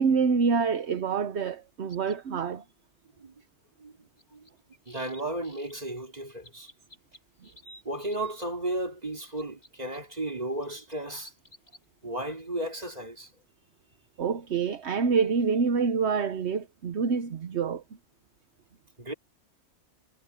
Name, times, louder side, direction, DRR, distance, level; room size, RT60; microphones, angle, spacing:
voice 1, 0.0-2.6 14.2-17.8, right 5 dB, 70° right, 1.2 m, -26 dB
sound 1, 1.9-2.2 4.2-5.8 6.4-8.4 9.1-10.0 10.6-11.8, equal, 60° left, 7.3 m, -53 dB
voice 2, 4.9-6.7 7.9-11.3 12.0-13.3 19.0-19.1, right 1 dB, 35° right, 3.6 m, -34 dB
omnidirectional pair, 1.2 m